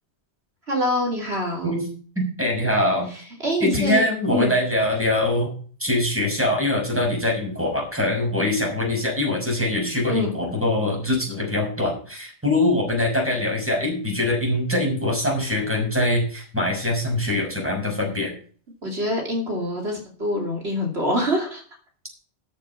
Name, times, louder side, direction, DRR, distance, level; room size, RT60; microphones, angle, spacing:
voice 1, 0.7-1.8 3.1-4.0 4.3-4.5 10.1-10.3 18.8-21.6, equal, 65° right, 0 dB, 3.0 m, -25 dB
voice 2, 2.2-3.1 3.6-5.5 5.8-18.3, left 1 dB, 10° right, -1 dB, 6.1 m, -23 dB
13.0 x 7.7 x 5.7 m, 0.43 s
omnidirectional pair, 1.2 m